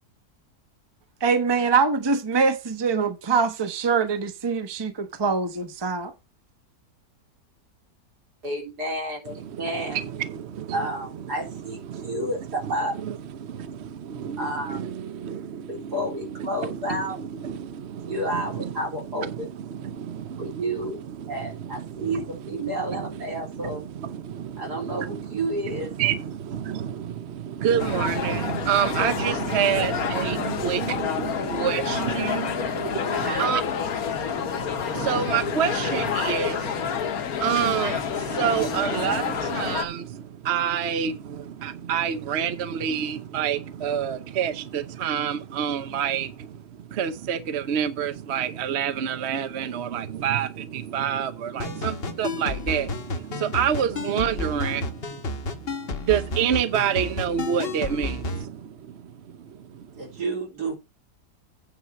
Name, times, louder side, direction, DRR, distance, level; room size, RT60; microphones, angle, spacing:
voice 1, 1.2-6.1, right 5 dB, 20° right, 0.9 m, -23 dB
voice 2, 8.4-10.0 10.7-13.0 14.4-14.8 15.7-17.2 18.1-19.5 20.4-21.0 21.3-22.2 22.5-23.8 24.6-25.9 33.1-33.5 59.9-60.8, right 1 dB, 70° right, 4.2 m, -30 dB
voice 3, 9.3-60.2, right 8 dB, 50° right, 0.9 m, -29 dB
sound 1, 27.8-39.9, left 7 dB, 65° left, 1.5 m, -28 dB
sound 2, 51.6-58.4, left 3 dB, 40° left, 1.2 m, -32 dB
9.2 x 4.5 x 7.0 m
omnidirectional pair, 1.8 m